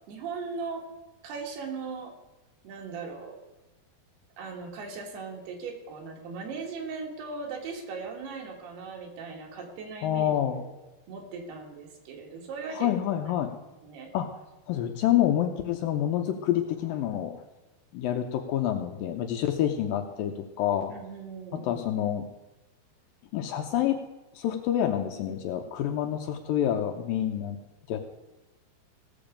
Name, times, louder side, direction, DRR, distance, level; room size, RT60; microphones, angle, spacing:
voice 1, 0.1-0.9 1.2-2.1 2.6-3.4 4.4-10.7 11.1-13.0 13.4-13.5 13.8-14.1 20.9-21.8, right 4 dB, 80° right, 2 dB, 3.8 m, -38 dB
voice 2, 10.0-10.7 12.7-13.5 14.1-14.3 14.7-17.4 17.9-20.9 21.5-22.2 23.3-24.0 24.4-27.6 27.9-28.0, left 11 dB, 80° left, 5 dB, 2.1 m, -27 dB
16.5 x 7.0 x 5.1 m, 1.0 s
omnidirectional pair, 4.6 m